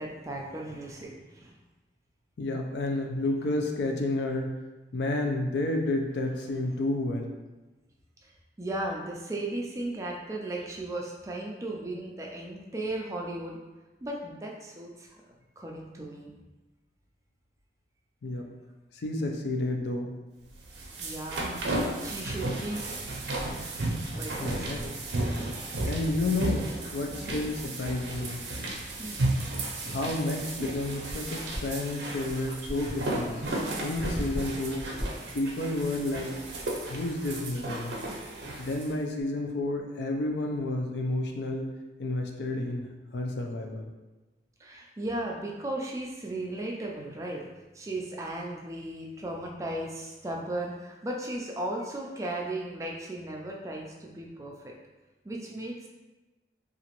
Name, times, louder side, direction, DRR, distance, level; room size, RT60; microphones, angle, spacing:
voice 1, 0.0-1.5 8.2-8.3 8.6-13.6 14.0-15.1 15.6-16.3 21.0-21.5 22.0-22.8 24.1-24.9 25.3-25.9 27.2-27.4 29.0-29.2 44.6-47.4 47.7-54.7 55.2-55.9, right 1 dB, 20° right, -1 dB, 0.3 m, -36 dB
voice 2, 2.4-4.6 4.9-7.3 18.2-18.5 19.0-20.1 24.4-24.8 25.8-28.4 29.9-33.4 33.8-34.9 35.3-36.4 36.9-38.0 38.6-41.7 42.0-43.9, left 2 dB, 80° left, 2 dB, 0.4 m, -31 dB
sound 1, 20.5-38.9, right 2 dB, 90° right, 0.5 m, -34 dB
sound 2, 20.7-25.2 27.6-27.7 29.7-35.5, equal, 35° left, 0.6 m, -42 dB
2.9 x 2.4 x 2.9 m, 1.1 s
head